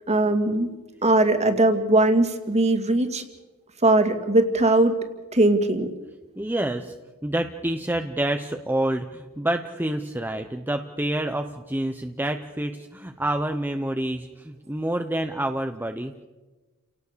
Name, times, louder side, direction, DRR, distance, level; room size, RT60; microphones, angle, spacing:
voice 1, 0.1-0.7 1.0-3.2 3.8-5.0 5.3-5.9, right 2 dB, 30° right, 7 dB, 2.3 m, -20 dB
voice 2, 6.4-6.9 7.2-16.2, right 1 dB, 10° right, 6 dB, 0.8 m, -28 dB
30.0 x 18.0 x 6.8 m, 1.2 s
head